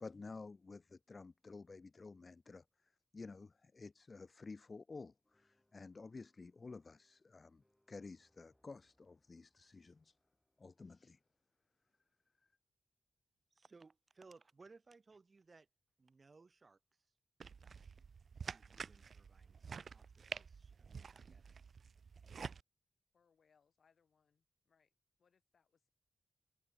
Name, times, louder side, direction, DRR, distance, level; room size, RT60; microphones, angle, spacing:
voice 1, 0.0-2.6 3.1-7.6 7.9-10.2 10.6-11.2, left 4 dB, 35° left, 0.9 m, -52 dB
sound 1, 5.2-12.3, left 1 dB, 5° left, 6.3 m, -83 dB
voice 2, 13.5-15.7 16.0-17.1 17.6-18.0 18.5-21.4, right 4 dB, 35° right, 1.1 m, -63 dB
sound 2, 17.4-22.6, right 6 dB, 60° right, 0.7 m, -49 dB
voice 3, 23.1-24.9 25.2-25.9, left 6 dB, 60° left, 6.6 m, -76 dB
wide cardioid pair, 120°, 0 cm